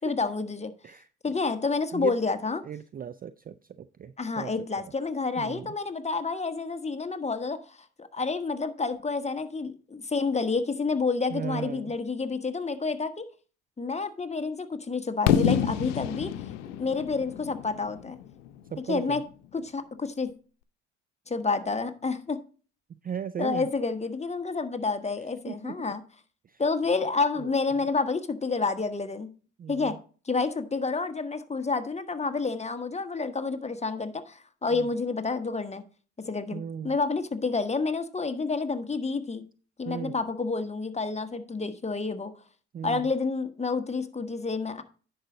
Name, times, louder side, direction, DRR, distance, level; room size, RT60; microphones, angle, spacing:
voice 1, 0.0-0.7 1.2-2.6 4.2-13.3 13.8-16.3 16.8-18.2 18.9-19.2 19.5-20.3 21.3-22.4 23.4-26.0 26.6-29.3 29.7-30.0 30.2-35.8 36.2-39.4 39.8-42.3 42.8-44.8, left 4 dB, 20° left, 1.3 m, -29 dB
voice 2, 0.8-1.3 1.9-2.2 2.6-4.9 5.4-5.7 11.3-12.0 15.2-15.8 18.7-19.2 22.9-23.7 25.5-25.9 26.4-26.6 27.4-27.5 29.6-30.0 34.7-34.9 36.5-37.0 39.9-40.2 42.7-43.1, right 8 dB, 25° right, 0.4 m, -37 dB
Fireworks, 15.3-19.1, left 9 dB, 85° left, 0.7 m, -28 dB
10.0 x 6.2 x 3.9 m
hypercardioid pair, 55°, 35 cm